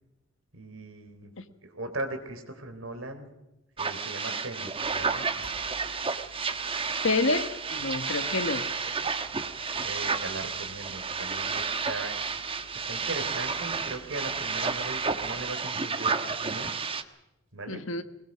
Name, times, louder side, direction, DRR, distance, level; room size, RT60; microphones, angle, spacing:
voice 1, 0.5-1.3 1.6-3.3 3.8-5.4 9.8-12.2 12.7-16.7 17.5-17.8, right 2 dB, 75° right, 7 dB, 3.6 m, -39 dB
sound 1, 3.8-17.0, right 5 dB, 25° right, 1.2 m, -31 dB
sound 2, 4.8-15.2, left 1 dB, 45° left, 5.3 m, -55 dB
voice 2, 7.0-8.7 17.7-18.0, left 3 dB, 70° left, 10 dB, 1.5 m, -28 dB
22.0 x 21.0 x 6.4 m, 0.98 s
head